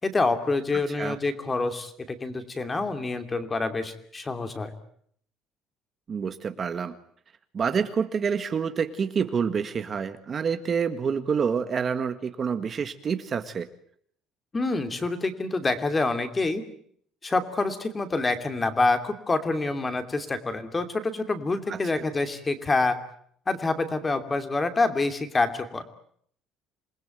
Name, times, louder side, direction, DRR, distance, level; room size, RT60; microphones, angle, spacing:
voice 1, 0.0-4.7 14.5-16.6 17.2-23.0 23.5-25.8, left 3 dB, 15° left, 9 dB, 2.8 m, -27 dB
voice 2, 6.1-6.9 7.5-13.7 21.7-22.0, right 6 dB, 30° right, 9 dB, 1.7 m, -27 dB
27.5 x 21.0 x 9.3 m, 0.65 s
cardioid pair, 150°, 0 cm